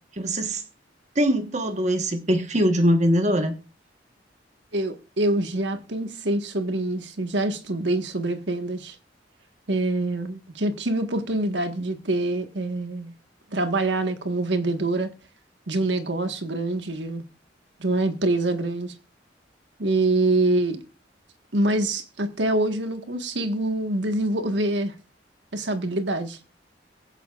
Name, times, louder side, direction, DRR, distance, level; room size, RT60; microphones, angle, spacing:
voice 1, 0.2-0.6 1.1-3.6, equal, 40° right, 1.3 m, -22 dB
voice 2, 4.7-8.9 9.7-13.1 13.5-15.1 15.7-17.2 17.8-18.9 19.8-20.8 21.5-24.9 25.5-26.4, right 2 dB, 80° right, 1.5 m, -25 dB
22.5 x 9.0 x 2.5 m
head